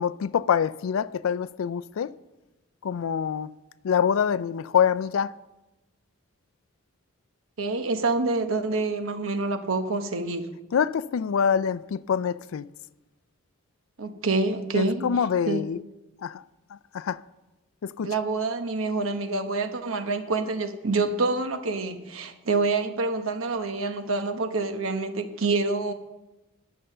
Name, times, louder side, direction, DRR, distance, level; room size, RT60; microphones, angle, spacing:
voice 1, 0.0-2.1 2.8-3.5 3.8-5.3 10.7-12.7 14.7-15.8 16.2-16.4 16.7-17.2 17.8-18.1, left 7 dB, 75° left, 0.4 m, -25 dB
voice 2, 7.6-10.5 14.0-15.1 15.5-15.6 18.0-25.9, right 3 dB, 75° right, 1.0 m, -27 dB
11.0 x 6.8 x 6.6 m
head